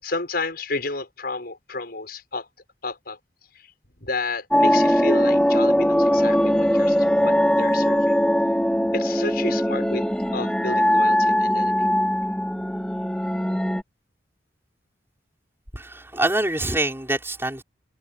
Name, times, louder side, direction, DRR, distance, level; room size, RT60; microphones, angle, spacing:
voice 1, 0.0-2.5 2.8-3.2 3.5-3.7 4.0-8.1 8.9-10.1 10.3-11.9, left 3 dB, 60° left, 6.6 m, -31 dB
sound 1, 4.5-13.8, equal, 5° left, 3.7 m, -20 dB
voice 2, 15.7-17.6, right 1 dB, 15° right, 5.9 m, -25 dB
head